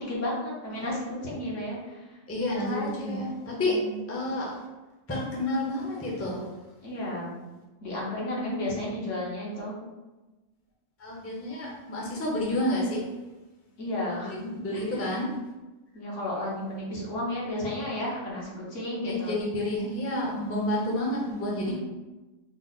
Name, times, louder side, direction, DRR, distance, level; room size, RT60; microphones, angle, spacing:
voice 1, 0.0-2.2 2.6-4.0 6.8-7.3 7.8-9.8 13.8-14.8 15.9-19.4 21.6-21.8, left 1 dB, 75° left, -5 dB, 1.4 m, -33 dB
voice 2, 2.3-3.8 4.1-4.6 5.1-6.5 11.0-13.1 14.2-15.3 19.0-21.8, left 1 dB, 15° left, -3 dB, 0.5 m, -30 dB
3.9 x 2.0 x 3.9 m, 1.1 s
omnidirectional pair, 1.3 m